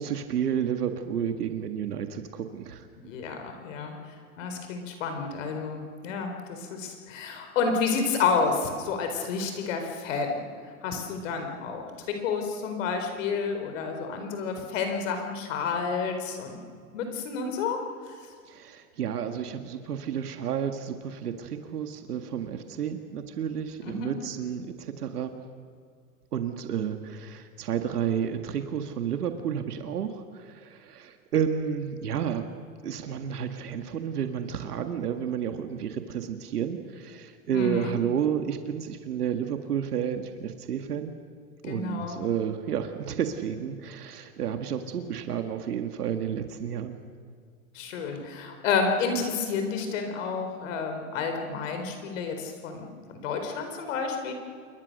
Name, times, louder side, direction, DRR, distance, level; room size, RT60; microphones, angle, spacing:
voice 1, 0.0-2.9 18.5-25.3 26.3-32.4 32.8-41.1 41.6-47.0, right 8 dB, 85° right, 7 dB, 1.9 m, -31 dB
voice 2, 3.0-3.9 4.4-10.4 10.8-16.6 16.9-17.8 18.1-18.2 23.8-24.1 37.5-37.9 41.7-42.2 47.7-52.9 53.2-54.3, left 5 dB, 55° left, 5 dB, 4.2 m, -30 dB
28.5 x 22.5 x 6.6 m, 2.1 s
hypercardioid pair, 140°, 45 cm